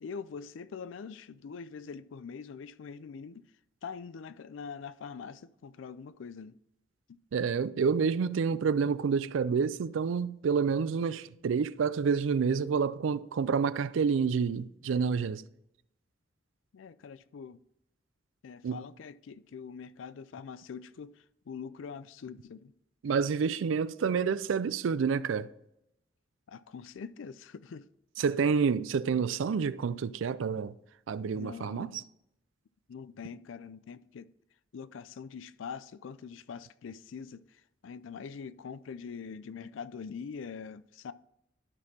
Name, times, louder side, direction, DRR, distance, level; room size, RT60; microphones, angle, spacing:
voice 1, 0.0-3.4 3.8-6.6 7.1-7.2 16.7-17.6 18.4-21.1 21.5-22.7 26.5-27.9 31.3-32.1 32.9-34.3 34.7-41.1, left 6 dB, 85° left, 0.4 m, -43 dB
voice 2, 7.3-15.4 18.6-18.8 23.0-25.5 28.2-30.7 31.1-31.9, right 6 dB, 90° right, 0.4 m, -28 dB
12.0 x 4.3 x 4.1 m
head